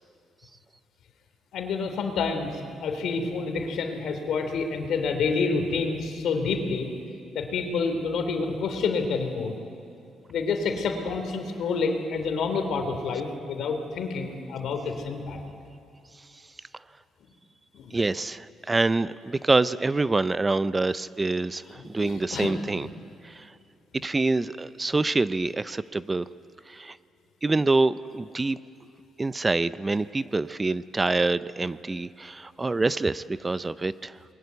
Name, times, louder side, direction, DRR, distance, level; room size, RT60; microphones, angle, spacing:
voice 1, 1.5-6.9 7.3-9.5 10.3-15.4 17.7-18.0 21.8-22.9, left 4 dB, 75° left, 6 dB, 3.0 m, -28 dB
voice 2, 17.9-22.9 23.2-23.5 23.9-26.3 26.7-27.0 27.4-28.6 29.2-34.2, right 3 dB, 20° right, 16 dB, 0.5 m, -26 dB
29.0 x 21.5 x 8.2 m, 2.5 s
cardioid pair, 90°, 0 cm